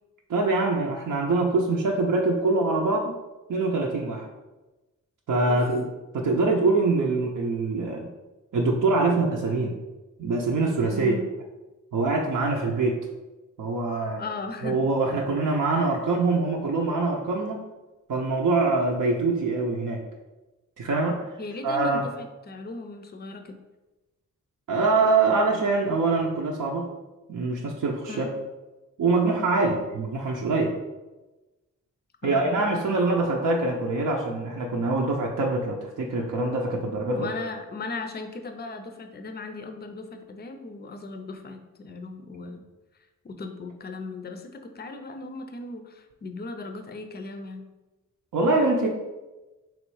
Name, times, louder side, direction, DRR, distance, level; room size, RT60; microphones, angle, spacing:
voice 1, 0.3-3.1 3.5-4.3 5.3-5.9 6.1-8.1 8.5-9.8 10.2-11.2 11.9-13.0 13.6-14.2 14.6-17.6 18.1-20.0 20.8-21.2 21.6-22.0 24.7-26.9 27.3-28.3 29.0-30.8 32.2-37.3 48.3-48.9, right 3 dB, 75° right, -1 dB, 0.6 m, -24 dB
voice 2, 10.9-11.3 14.2-14.8 21.4-23.6 28.1-28.3 29.6-29.8 32.2-32.6 37.1-42.7 43.2-47.6, left 3 dB, 30° left, 6 dB, 0.4 m, -37 dB
3.6 x 3.1 x 4.6 m, 1.1 s
wide cardioid pair, 135°, 32 cm